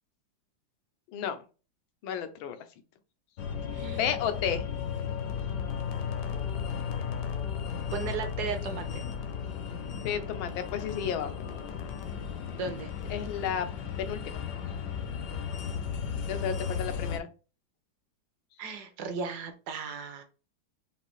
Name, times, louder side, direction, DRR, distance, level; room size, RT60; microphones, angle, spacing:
voice 1, 2.0-2.6 4.0-4.6 10.0-11.3 13.1-13.7 14.0-14.4 16.3-17.3, left 8 dB, 90° left, 9 dB, 1.5 m, -32 dB
sound 1, 3.4-17.2, left 7 dB, 70° left, 1.1 m, -35 dB
voice 2, 3.7-4.2 7.9-9.0 12.5-12.9 18.6-20.2, right 5 dB, 65° right, 7 dB, 1.2 m, -36 dB
5.2 x 2.7 x 3.0 m, 0.33 s
omnidirectional pair, 2.1 m